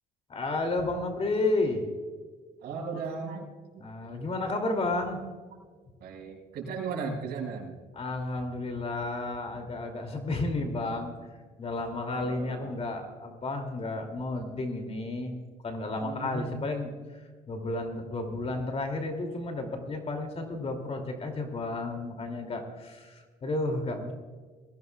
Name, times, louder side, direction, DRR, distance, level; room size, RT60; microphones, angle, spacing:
voice 1, 0.3-1.9 3.8-5.2 7.9-11.1 11.6-15.3 15.6-16.9 17.5-24.1, left 2 dB, 35° left, 4 dB, 2.6 m, -32 dB
voice 2, 2.6-3.5 4.1-4.3 6.0-7.8 12.2-12.8 16.0-16.8, right 4 dB, 70° right, -1 dB, 5.1 m, -36 dB
22.0 x 16.0 x 2.3 m, 1.5 s
cardioid pair, 110°, 17 cm